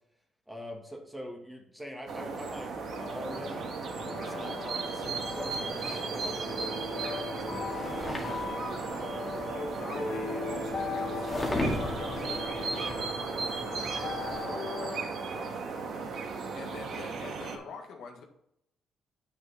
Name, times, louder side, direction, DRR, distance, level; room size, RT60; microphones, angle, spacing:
voice 1, 0.5-2.7 2.9-7.7 8.5-9.2, equal, 5° right, 1 dB, 2.0 m, -44 dB
sound 1, 2.1-17.6, right 4 dB, 65° right, 1.7 m, -36 dB
sound 2, 2.7-15.1, left 4 dB, 45° left, 2.7 m, -39 dB
sound 3, 5.0-14.5, left 1 dB, 20° left, 1.9 m, -39 dB
voice 2, 9.4-18.2, left 4 dB, 75° left, 2 dB, 1.6 m, -46 dB
8.8 x 6.3 x 4.3 m, 0.75 s
cardioid pair, 90°, 0 cm